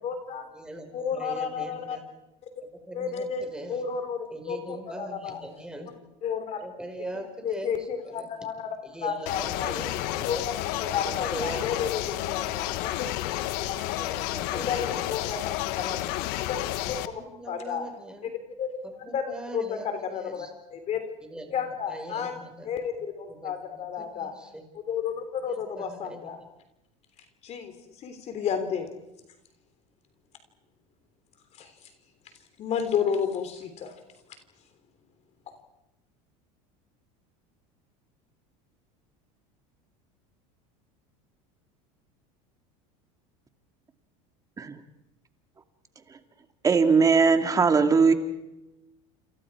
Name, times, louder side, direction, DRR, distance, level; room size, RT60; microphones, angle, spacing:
voice 1, 0.0-0.5 0.9-2.0 2.9-5.4 6.2-6.6 7.4-8.8 9.0-9.7 10.2-10.5 10.8-13.1 13.7-13.8 14.5-15.4 15.8-16.0 16.5-16.6 16.9-17.0 17.5-17.8 18.6-18.7 19.1-19.2 19.5-21.1 21.5-24.3 24.9-26.4 27.4-28.9 31.6-31.9 32.6-34.0, left 7 dB, 40° left, 8 dB, 3.4 m, -32 dB
voice 2, 0.5-2.0 2.9-3.8 4.3-6.0 6.6-8.3 8.8-10.4 10.9-12.1 13.9-15.3 15.8-16.0 16.3-16.5 17.0-18.3 18.8-20.5 21.2-22.7 23.3-24.6 25.5-26.2, right 1 dB, 5° right, 4 dB, 5.1 m, -41 dB
sound 1, 9.3-17.1, left 15 dB, 65° left, 1.3 m, -31 dB
voice 3, 46.6-48.1, right 5 dB, 20° right, 6 dB, 2.3 m, -19 dB
28.5 x 28.5 x 4.8 m, 0.94 s
supercardioid pair, 120°, 17 cm